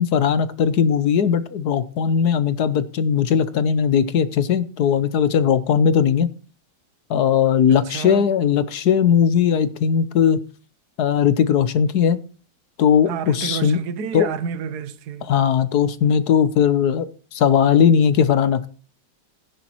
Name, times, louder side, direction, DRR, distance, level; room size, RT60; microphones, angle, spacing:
voice 1, 0.0-6.3 7.1-10.4 11.0-12.2 12.8-13.8 14.1-14.3 15.3-18.7, left 8 dB, 65° left, 1.4 m, -18 dB
voice 2, 7.7-8.3 13.1-15.3, right 6 dB, 70° right, 1.5 m, -30 dB
15.5 x 10.5 x 3.0 m
omnidirectional pair, 1.9 m